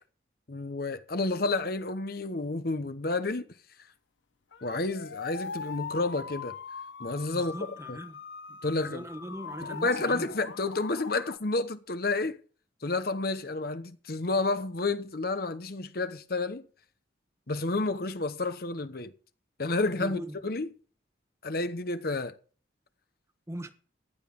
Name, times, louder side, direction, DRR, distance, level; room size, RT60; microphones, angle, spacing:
voice 1, 0.5-3.5 4.6-6.6 7.0-7.5 7.9-8.0 8.6-9.0 9.6-12.4 12.8-16.7 17.5-19.1 19.6-20.7 21.4-22.4, left 3 dB, 50° left, 0.9 m, -30 dB
sound 1, 4.5-11.4, left 5 dB, 80° left, 0.7 m, -41 dB
voice 2, 7.3-8.2 8.5-10.3 19.9-20.4 23.5-23.7, right 1 dB, 15° right, 1.1 m, -40 dB
15.0 x 10.5 x 3.7 m
head